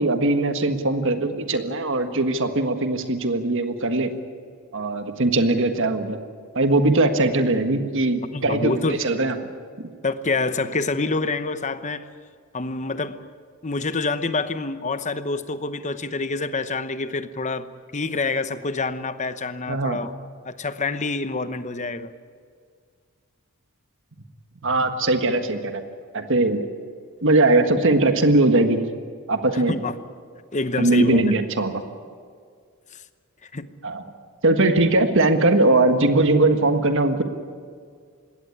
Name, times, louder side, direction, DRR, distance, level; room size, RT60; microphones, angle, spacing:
voice 1, 0.0-4.1 4.7-6.2 6.6-9.4 9.8-9.9 19.7-20.0 24.6-25.8 26.1-26.7 27.2-28.8 29.3-29.8 30.8-31.8 33.8-34.1 34.4-37.2, right 2 dB, 60° right, 7 dB, 1.6 m, -20 dB
voice 2, 8.3-9.0 10.0-12.1 12.5-13.2 13.6-17.7 17.9-20.1 20.4-22.1 29.7-29.9 30.5-31.3 32.9-33.0 33.4-33.7, left 3 dB, 35° left, 12 dB, 0.9 m, -27 dB
20.5 x 17.0 x 9.8 m, 2.1 s
head